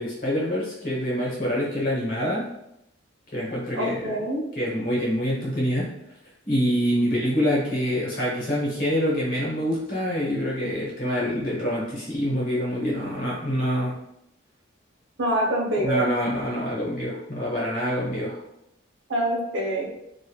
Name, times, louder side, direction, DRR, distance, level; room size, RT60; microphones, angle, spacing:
voice 1, 0.0-2.5 3.3-4.1 4.6-5.9 6.5-14.0 15.8-18.4, equal, 45° left, -5 dB, 1.0 m, -26 dB
voice 2, 3.7-4.4 12.8-12.9 15.2-16.0 19.1-19.9, right 1 dB, 70° right, -2 dB, 0.7 m, -25 dB
3.1 x 2.5 x 2.3 m, 0.80 s
head